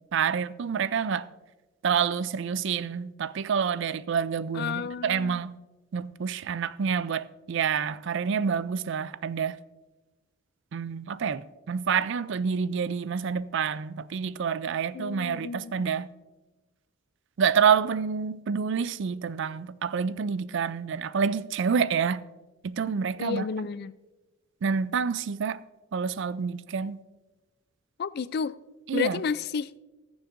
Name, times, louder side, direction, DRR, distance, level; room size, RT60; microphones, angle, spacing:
voice 1, 0.1-1.3 1.8-5.5 5.9-9.6 10.7-16.1 17.4-22.2 22.6-23.5 24.6-25.6 25.9-27.0 28.9-29.2, right 6 dB, 60° right, 0.4 m, -28 dB
voice 2, 4.5-5.4 14.9-15.9 23.2-23.9 28.0-28.6 28.9-29.7, left 6 dB, 45° left, 0.3 m, -31 dB
20.5 x 7.1 x 2.6 m
head